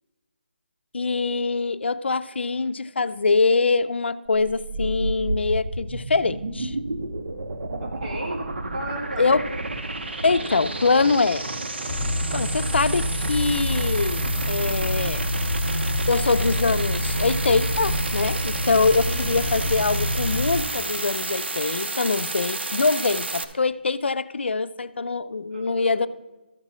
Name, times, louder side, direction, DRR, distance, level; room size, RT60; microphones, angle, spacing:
voice 1, 0.9-6.8 9.2-9.4 10.2-11.4 12.3-15.2 16.1-26.1, left 4 dB, 90° left, 14 dB, 0.5 m, -23 dB
sound 1, 4.3-23.4, right 2 dB, 85° right, 0.9 m, -31 dB
voice 2, 7.8-8.4 8.7-9.4 19.1-19.2 19.6-19.7 25.5-26.0, right 1 dB, 45° right, -4 dB, 3.7 m, -34 dB
sound 2, 11.9-20.6, left 1 dB, 30° left, 2.2 m, -27 dB
14.0 x 6.0 x 4.2 m, 1.1 s
hypercardioid pair, 170°, 6 cm